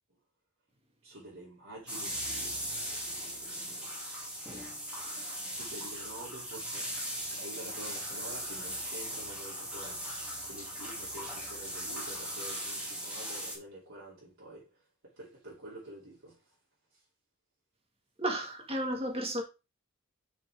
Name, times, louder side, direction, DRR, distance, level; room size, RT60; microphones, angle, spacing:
voice 1, 1.0-2.6 3.0-4.0 5.4-10.1 10.4-16.6 16.9-17.0, right 1 dB, 65° right, 2.9 m, -48 dB
sound 1, 1.9-13.6, equal, 5° right, 2.3 m, -38 dB
voice 2, 18.2-19.4, right 1 dB, 25° right, 1.8 m, -33 dB
6.8 x 6.0 x 3.5 m
head